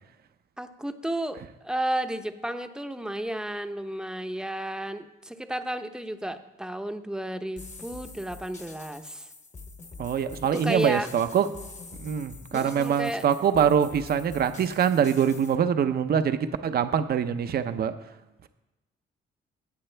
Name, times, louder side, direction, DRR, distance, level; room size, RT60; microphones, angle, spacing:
voice 1, 0.6-9.3 10.5-11.1 12.5-13.2, right 1 dB, 5° right, 8 dB, 0.8 m, -32 dB
sound 1, 7.6-15.6, left 4 dB, 35° left, 1.2 m, -46 dB
voice 2, 10.0-11.5 12.0-17.9, right 8 dB, 50° right, 10 dB, 0.7 m, -24 dB
18.0 x 6.7 x 3.4 m, 1.1 s
cardioid pair, 90°, 20 cm